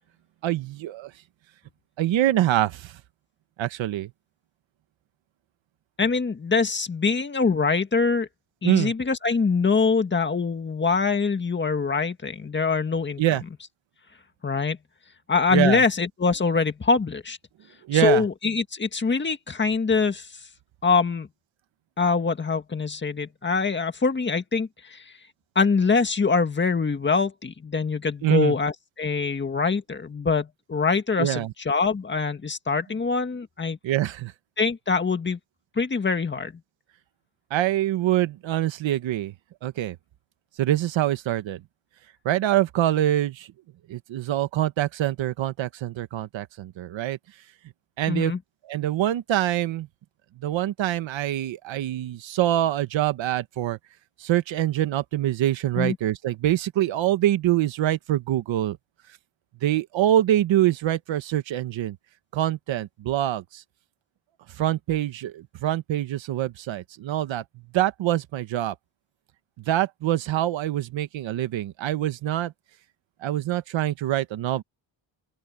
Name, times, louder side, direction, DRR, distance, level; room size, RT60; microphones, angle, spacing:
voice 1, 0.4-1.1 2.0-3.0 3.6-4.1 8.6-8.9 13.2-13.4 15.5-15.8 17.9-18.2 28.2-28.5 31.2-31.5 33.8-34.3 37.5-39.3 39.6-40.0 40.6-41.6 42.2-43.5 43.9-47.2 48.0-48.3 48.7-49.9 50.4-53.8 54.2-58.8 59.6-62.0 62.3-63.6 64.6-67.4 67.7-68.7 69.7-72.5 73.2-74.6, right 13 dB, 70° right, 1.3 m, -25 dB
voice 2, 6.0-8.3 8.6-13.2 14.4-14.8 15.3-17.4 17.9-20.3 20.8-21.3 22.0-25.0 25.5-33.8 34.6-35.4 35.7-36.6 48.1-48.4 55.7-56.0, left 4 dB, 25° left, 1.8 m, -24 dB
open air
cardioid pair, 155°, 47 cm